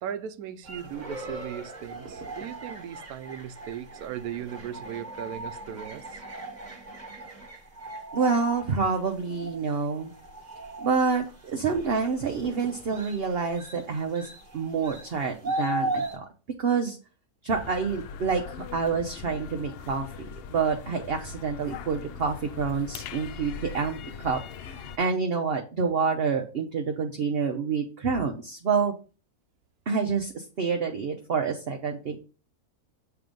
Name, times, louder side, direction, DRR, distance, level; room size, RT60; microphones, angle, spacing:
voice 1, 0.0-6.2, right 9 dB, 80° right, 1.1 m, -37 dB
sound 1, 0.6-16.2, right 1 dB, 30° right, 1.3 m, -38 dB
voice 2, 8.1-10.1 10.8-16.3 16.6-17.0 17.4-28.9 29.9-32.2, right 5 dB, 50° right, 0.8 m, -28 dB
sound 2, 17.5-25.0, left 7 dB, 85° left, 0.5 m, -41 dB
7.5 x 3.4 x 5.2 m
omnidirectional pair, 1.6 m